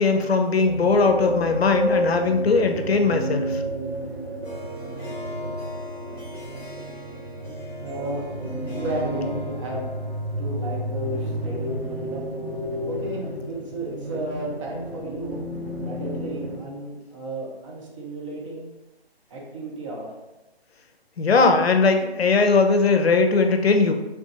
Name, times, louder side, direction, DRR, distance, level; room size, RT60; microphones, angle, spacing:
voice 1, 0.0-3.6 21.2-23.9, left 4 dB, 75° left, 6 dB, 0.6 m, -19 dB
sound 1, 0.6-16.6, right 1 dB, 85° right, 1.4 m, -31 dB
Harp, 4.4-11.9, left 2 dB, 10° left, 1.1 m, -40 dB
voice 2, 7.8-8.3 8.7-9.9 10.4-12.3 12.9-15.4 15.8-18.7 19.3-20.1, right 2 dB, 30° right, -2 dB, 0.8 m, -33 dB
3.4 x 3.3 x 2.8 m, 1.0 s
figure-of-eight pair, 140°, 31 cm